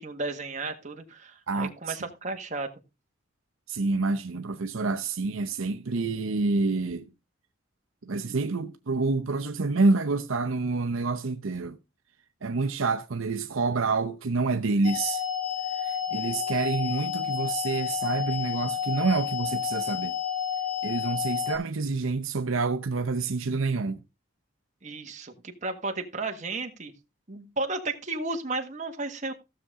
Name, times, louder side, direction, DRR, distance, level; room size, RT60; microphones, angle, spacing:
voice 1, 0.0-2.7 24.8-26.9 27.3-29.3, right 3 dB, 35° right, 1.6 m, -33 dB
voice 2, 1.5-2.0 3.7-7.1 8.0-11.8 12.4-15.2 15.8-20.1 20.8-24.0, right 3 dB, 80° right, 0.7 m, -28 dB
sound 1, 14.8-21.6, left 9 dB, 70° left, 3.4 m, -30 dB
15.5 x 6.8 x 3.7 m
head